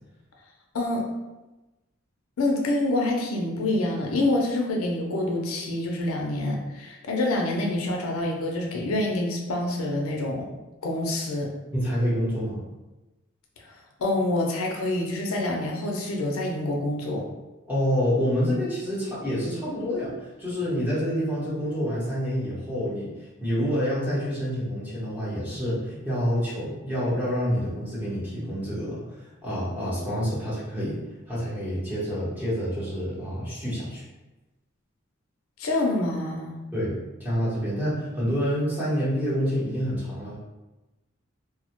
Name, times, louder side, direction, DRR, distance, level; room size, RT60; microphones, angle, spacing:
voice 1, 0.7-1.1 2.4-10.5 10.8-11.5 14.0-17.2 35.6-36.6, left 2 dB, 90° left, 0 dB, 0.5 m, -26 dB
voice 2, 11.7-12.6 17.7-20.1 20.4-23.1 23.4-29.0 29.4-31.0 31.3-34.0 36.7-40.4, equal, 10° right, -9 dB, 0.8 m, -27 dB
2.1 x 2.0 x 2.8 m, 1.1 s
head